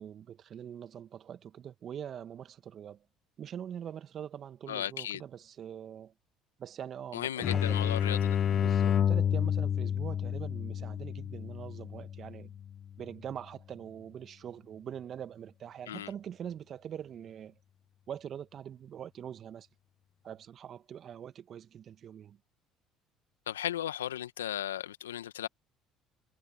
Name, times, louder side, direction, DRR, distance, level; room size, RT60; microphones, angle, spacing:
voice 1, 0.0-3.1 3.4-6.1 6.6-7.9 8.5-12.6 13.0-17.5 18.1-19.7 20.2-22.4, right 9 dB, 50° right, 1.8 m, -43 dB
voice 2, 4.7-5.2 7.1-8.4 15.9-16.1 23.5-25.5, left 11 dB, 85° left, 1.8 m, -35 dB
sound 1, 7.4-12.9, left 9 dB, 50° left, 0.6 m, -30 dB
hypercardioid pair, 60°, 0 cm